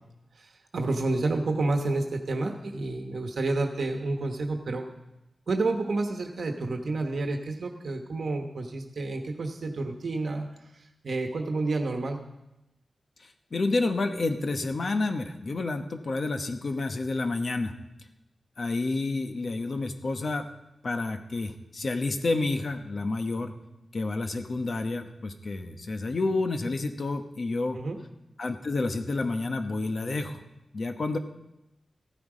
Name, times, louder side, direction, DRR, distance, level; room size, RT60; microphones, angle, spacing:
voice 1, 0.7-4.8 5.5-10.5 11.0-12.2 27.7-28.0, right 2 dB, 65° right, 3 dB, 1.2 m, -29 dB
voice 2, 13.5-17.7 18.6-20.5 20.8-23.5 23.9-27.8 28.4-30.4 30.7-31.2, left 3 dB, 55° left, 6 dB, 1.0 m, -29 dB
15.0 x 9.5 x 5.0 m, 0.92 s
wide cardioid pair, 125°, 0 cm